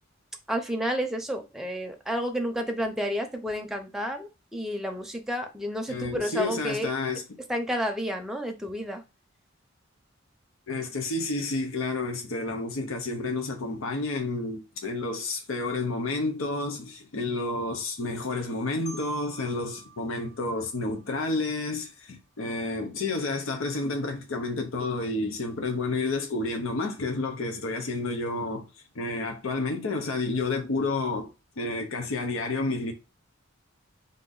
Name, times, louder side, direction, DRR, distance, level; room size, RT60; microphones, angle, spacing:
voice 1, 0.5-6.9 7.5-9.0, equal, ahead, 0.6 m, -30 dB
voice 2, 5.9-7.2 10.7-28.7 29.0-31.3 31.6-32.9, left 3 dB, 80° left, 0.7 m, -30 dB
Marimba xylophone, 18.9-21.7, right 2 dB, 40° left, 0.8 m, -49 dB
3.8 x 2.6 x 3.9 m
head